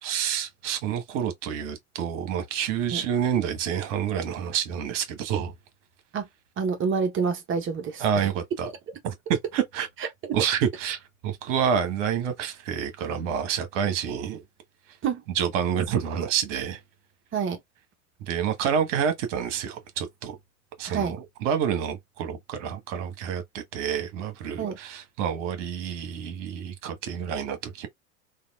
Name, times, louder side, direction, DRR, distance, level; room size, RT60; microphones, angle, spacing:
voice 1, 0.0-5.5 8.0-8.7 9.0-14.4 15.3-16.8 18.2-20.4 20.8-27.9, right 8 dB, 60° right, 1.1 m, -28 dB
voice 2, 6.6-8.0 10.2-10.3 15.0-15.2 17.3-17.6 20.9-21.2 24.6-24.8, right 6 dB, 30° right, 1.0 m, -27 dB
3.4 x 2.5 x 2.3 m
hypercardioid pair, 90°, 42 cm